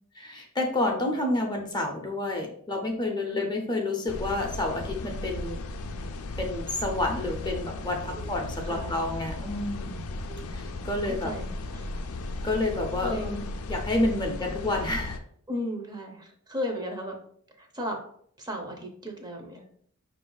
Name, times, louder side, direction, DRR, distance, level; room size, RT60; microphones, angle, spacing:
voice 1, 0.2-5.6 6.4-10.0 10.5-11.3 12.4-15.2, left 2 dB, 20° left, 1 dB, 0.6 m, -29 dB
sound 1, 4.1-15.2, left 2 dB, 70° left, 0.5 m, -36 dB
voice 2, 8.7-9.0 10.3-10.6 11.1-11.9 13.0-13.3 15.5-17.2 17.6-18.1 18.4-19.7, equal, 20° right, 2 dB, 0.7 m, -35 dB
5.2 x 2.6 x 3.8 m, 0.62 s
head